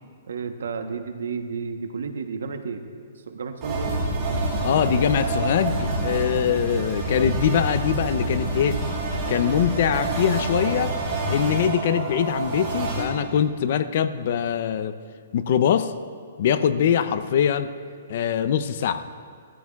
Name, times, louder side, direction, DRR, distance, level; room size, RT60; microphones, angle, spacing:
voice 1, 0.2-2.8 3.3-4.1, right 5 dB, 90° right, 7 dB, 1.0 m, -32 dB
sound 1, 3.6-13.0, right 2 dB, 25° right, 3.6 m, -27 dB
voice 2, 4.6-8.8 9.3-11.0 11.3-15.0 15.3-15.9 16.4-17.7 18.1-19.0, left 8 dB, 45° left, 12 dB, 0.5 m, -23 dB
18.0 x 14.0 x 2.4 m, 2.2 s
hypercardioid pair, 170°, 0 cm